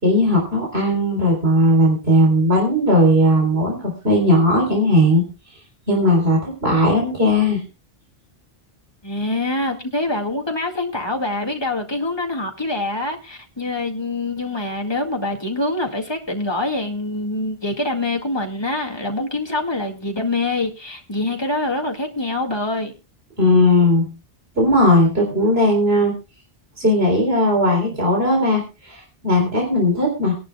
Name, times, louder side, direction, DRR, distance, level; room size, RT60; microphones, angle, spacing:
voice 1, 0.0-5.2 5.9-7.6 23.4-24.1 24.6-26.1 26.8-30.3, left 1 dB, 75° right, 4.1 m, -17 dB
voice 2, 9.0-22.9, left 2 dB, 25° left, 2.1 m, -25 dB
23.5 x 11.0 x 2.3 m
omnidirectional pair, 1.1 m